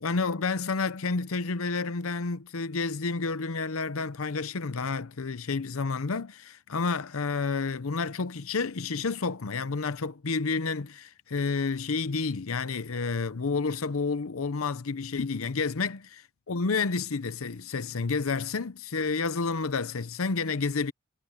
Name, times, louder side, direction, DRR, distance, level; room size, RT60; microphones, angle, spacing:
voice 1, 0.0-16.0 16.5-20.9, left 4 dB, 75° left, 0.8 m, -30 dB
head